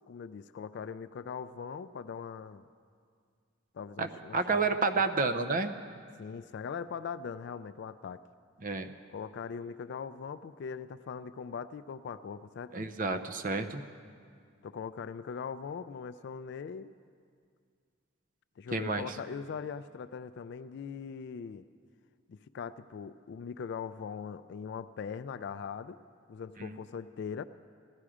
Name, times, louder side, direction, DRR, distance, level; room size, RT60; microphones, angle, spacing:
voice 1, 0.1-2.6 3.7-4.7 6.2-8.2 9.1-12.9 14.6-16.9 18.6-21.6 22.3-26.0 26.3-27.4, left 6 dB, 60° left, 13 dB, 0.3 m, -41 dB
voice 2, 4.0-5.7 8.6-8.9 12.7-13.8 18.7-19.0 26.6-26.8, right 4 dB, 45° right, 10 dB, 0.6 m, -30 dB
16.0 x 13.0 x 4.9 m, 2.2 s
head